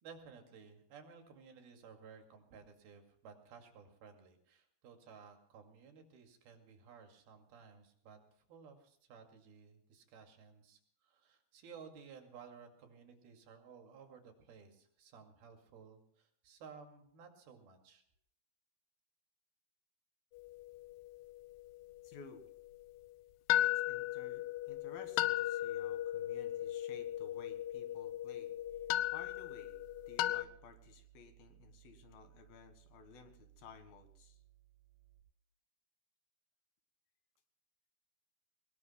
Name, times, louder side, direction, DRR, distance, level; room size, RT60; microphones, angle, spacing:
voice 1, 0.0-18.0, right 6 dB, 75° right, 4 dB, 4.1 m, -56 dB
sound 1, 20.4-22.0 22.4-22.5 23.5-30.4, left 14 dB, 90° left, 2.8 m, -36 dB
voice 2, 22.0-22.4 23.6-28.5 29.1-34.4, left 5 dB, 70° left, 7 dB, 3.4 m, -56 dB
sound 2, 28.6-35.2, right 16 dB, 50° right, 6.8 m, -63 dB
23.5 x 20.5 x 2.2 m, 0.67 s
omnidirectional pair, 4.5 m